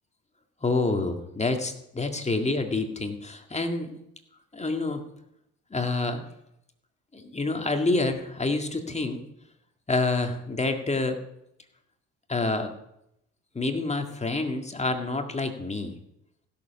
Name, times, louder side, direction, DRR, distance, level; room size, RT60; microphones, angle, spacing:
voice 1, 0.6-4.0 4.5-5.0 5.7-6.3 7.1-9.2 9.9-11.2 12.3-12.7 13.6-16.0, left 3 dB, 20° left, 5 dB, 1.9 m, -27 dB
16.0 x 7.1 x 5.8 m, 0.80 s
supercardioid pair, 75°, 34 cm